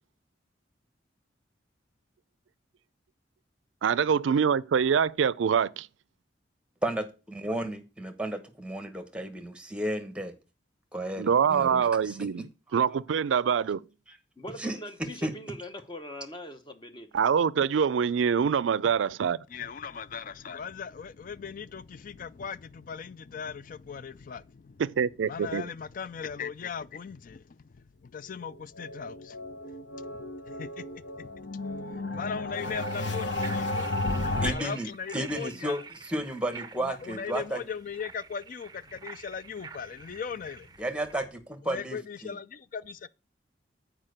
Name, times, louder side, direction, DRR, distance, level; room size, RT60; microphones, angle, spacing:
voice 1, 3.8-5.9 11.2-13.8 17.1-19.4 24.8-25.7, right 7 dB, 90° right, 0.4 m, -25 dB
voice 2, 6.8-10.3 10.9-12.3 14.1-14.2 14.6-14.8 15.2-15.3 34.4-37.6 40.8-42.0 42.2-42.3, right 1 dB, 5° right, 1.0 m, -33 dB
voice 3, 14.4-17.2, equal, 25° left, 1.0 m, -42 dB
voice 4, 19.5-24.8 25.2-31.6 32.1-33.9 34.4-35.8 36.8-40.7 41.7-43.1, left 6 dB, 45° left, 0.4 m, -39 dB
sound 1, 28.4-34.5, left 2 dB, 75° left, 1.0 m, -33 dB
sound 2, 32.6-41.3, right 5 dB, 20° right, 0.5 m, -47 dB
7.4 x 4.9 x 6.5 m
head